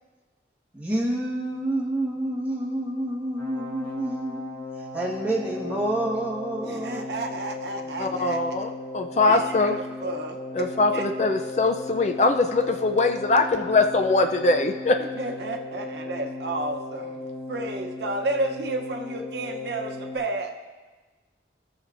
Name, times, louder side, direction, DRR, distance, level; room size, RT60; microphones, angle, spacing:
voice 1, 0.7-4.5 4.9-7.1, right 1 dB, 10° right, -5 dB, 1.5 m, -28 dB
sound 1, 3.4-20.2, left 3 dB, 10° left, 2.5 m, -36 dB
voice 2, 6.6-8.4 9.3-11.1 15.1-17.2 17.5-20.5, right 2 dB, 70° right, 3 dB, 0.8 m, -32 dB
voice 3, 8.0-9.8 10.5-15.0, left 3 dB, 40° left, 6 dB, 0.4 m, -22 dB
17.5 x 7.0 x 2.6 m, 1.3 s
head